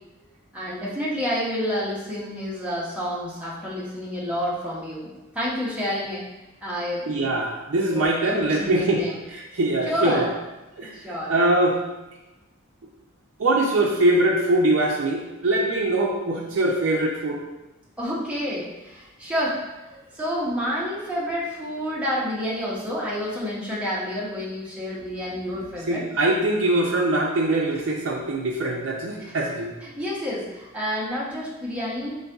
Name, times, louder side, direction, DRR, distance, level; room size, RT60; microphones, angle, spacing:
voice 1, 0.5-6.2 6.6-7.3 7.8-9.1 9.9-10.3 10.9-11.3 18.0-26.0 29.8-32.2, equal, 5° right, -7 dB, 0.8 m, -29 dB
voice 2, 7.1-10.3 10.8-10.9 11.3-11.8 13.4-17.4 25.9-29.7, right 2 dB, 60° right, -3 dB, 0.5 m, -22 dB
4.0 x 3.7 x 2.3 m, 1.0 s
head